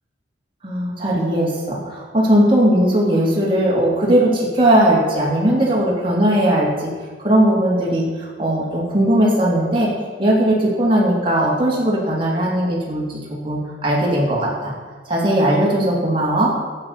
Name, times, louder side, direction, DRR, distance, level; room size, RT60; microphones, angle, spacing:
voice 1, 0.6-6.9 7.2-9.9 10.2-14.7 15.1-16.5, right 1 dB, 30° right, -4 dB, 3.2 m, -18 dB
11.5 x 9.2 x 6.8 m, 1.5 s
head